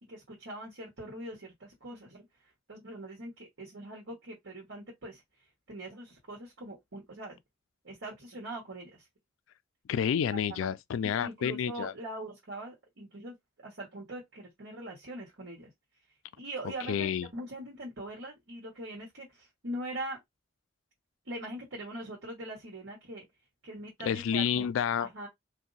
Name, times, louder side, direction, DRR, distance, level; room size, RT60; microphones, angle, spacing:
voice 1, 0.0-2.2 2.7-5.2 5.7-7.4 7.8-9.0 10.3-10.7 11.0-15.7 16.4-20.2 21.2-23.2 23.6-24.7 25.0-25.3, right 1 dB, 75° right, 1.4 m, -42 dB
voice 2, 9.9-11.9 16.9-17.3 24.0-25.1, left 8 dB, 85° left, 0.3 m, -29 dB
2.7 x 2.2 x 3.9 m
head